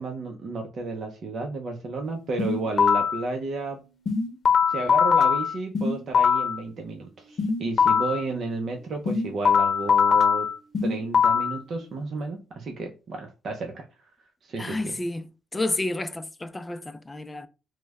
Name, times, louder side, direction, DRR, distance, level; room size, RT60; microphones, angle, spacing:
voice 1, 0.0-3.8 4.7-10.5 10.8-13.9 14.4-14.9, right 3 dB, 55° right, 0.6 m, -32 dB
sound 1, 2.4-3.2 4.1-6.6 7.4-8.2 9.1-11.6, left 6 dB, 50° left, 0.8 m, -21 dB
voice 2, 14.6-15.2 15.5-17.5, left 2 dB, 15° left, 0.4 m, -30 dB
3.1 x 2.1 x 3.4 m
cardioid pair, 90°, 0 cm